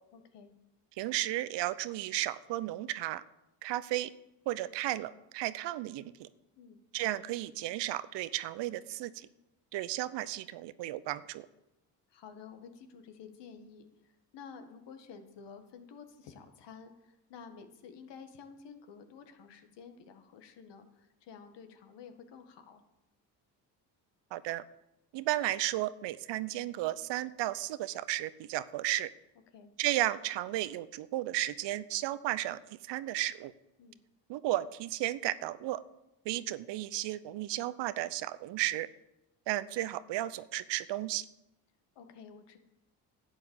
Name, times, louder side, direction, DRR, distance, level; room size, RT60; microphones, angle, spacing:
voice 1, 0.1-0.5 6.6-6.8 12.1-22.8 29.5-29.7 33.8-34.0 42.0-42.6, left 6 dB, 65° left, 7 dB, 1.8 m, -51 dB
voice 2, 1.0-3.2 3.6-4.1 4.5-6.3 6.9-9.3 9.7-11.5 24.3-24.6 25.1-29.1 29.8-32.6 32.9-33.5 34.3-35.8 36.2-38.9 39.5-41.2, right 15 dB, 70° right, 16 dB, 0.8 m, -34 dB
11.0 x 8.7 x 7.1 m, 0.92 s
supercardioid pair, 65°, 45 cm